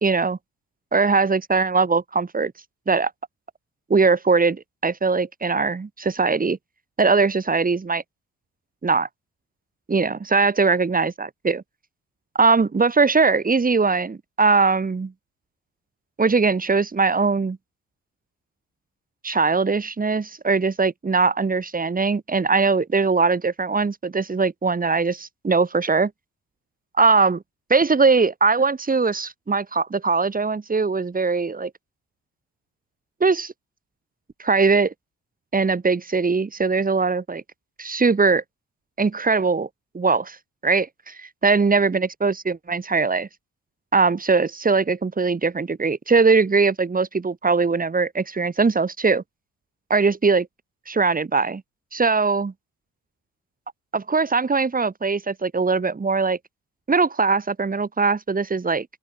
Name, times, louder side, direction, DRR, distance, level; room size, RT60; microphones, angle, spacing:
voice 1, 0.0-0.4 0.9-2.5 2.9-3.1 3.9-6.6 7.0-8.0 8.8-9.1 9.9-11.6 12.4-15.1 16.2-17.6 19.2-26.1 27.0-27.4 27.7-31.7 33.2-33.5 34.4-34.9 35.5-37.4 37.8-38.4 39.0-39.7 39.9-40.4 40.6-43.3 43.9-49.2 49.9-50.5 50.9-51.6 51.9-52.5 53.9-56.4 56.9-58.9, right 4 dB, 30° right, 3.6 m, -21 dB
open air
cardioid pair, 90°, 30 cm